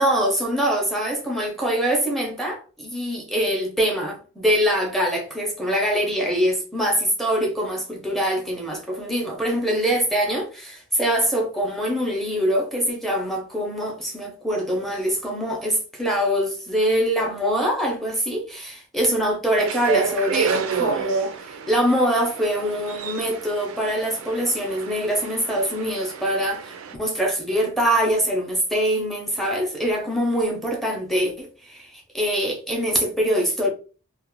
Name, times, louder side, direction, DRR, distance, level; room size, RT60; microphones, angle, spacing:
voice 1, 0.0-33.7, equal, ahead, 0.6 m, -24 dB
sound 1, 19.6-26.9, right 6 dB, 70° right, 0.4 m, -30 dB
2.4 x 2.0 x 3.0 m
head